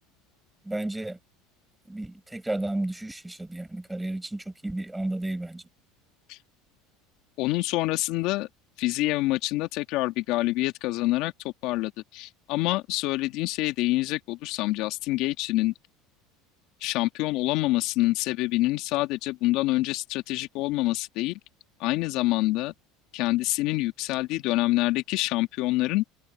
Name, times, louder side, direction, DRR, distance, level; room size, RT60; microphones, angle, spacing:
voice 1, 0.6-1.2 1.9-5.6, right 1 dB, 5° right, 6.1 m, -32 dB
voice 2, 7.4-8.5 8.8-15.7 16.8-21.4 21.8-22.7 23.1-26.0, left 19 dB, 65° left, 1.7 m, -26 dB
supercardioid pair, 110°, 0 cm